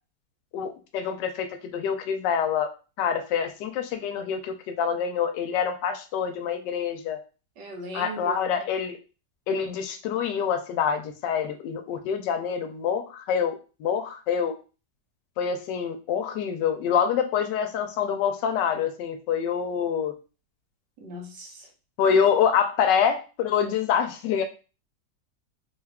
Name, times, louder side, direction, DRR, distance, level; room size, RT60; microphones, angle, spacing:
voice 1, 0.5-2.7 3.0-7.2 7.9-9.0 9.5-14.6 15.4-20.1 22.0-24.4, left 7 dB, 90° left, 6 dB, 1.2 m, -26 dB
voice 2, 7.6-8.6 21.0-21.7, equal, 80° right, 2 dB, 1.5 m, -39 dB
3.4 x 2.3 x 3.4 m, 0.33 s
omnidirectional pair, 1.8 m